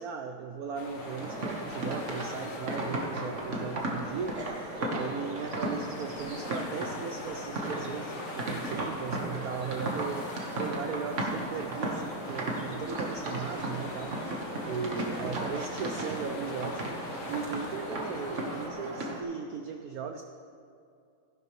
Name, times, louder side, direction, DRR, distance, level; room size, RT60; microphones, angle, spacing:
voice 1, 0.0-20.2, right 6 dB, 85° right, 5 dB, 0.8 m, -37 dB
sound 1, 0.7-18.7, left 4 dB, 55° left, 1.0 m, -45 dB
Ambiente - parque con cancha de basket, 1.0-19.2, right 1 dB, 40° right, 1.4 m, -35 dB
15.5 x 10.5 x 3.1 m, 2.5 s
omnidirectional pair, 2.3 m